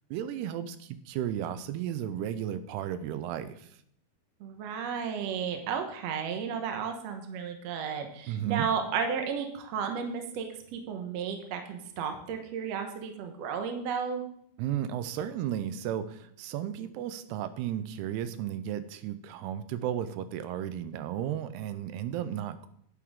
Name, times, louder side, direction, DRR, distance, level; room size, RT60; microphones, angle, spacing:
voice 1, 0.1-3.7 8.3-8.7 14.6-22.7, right 10 dB, 85° right, 12 dB, 2.7 m, -34 dB
voice 2, 4.4-10.5 10.7-14.2, right 6 dB, 70° right, 5 dB, 1.6 m, -33 dB
10.5 x 9.5 x 3.7 m, 0.67 s
omnidirectional pair, 4.6 m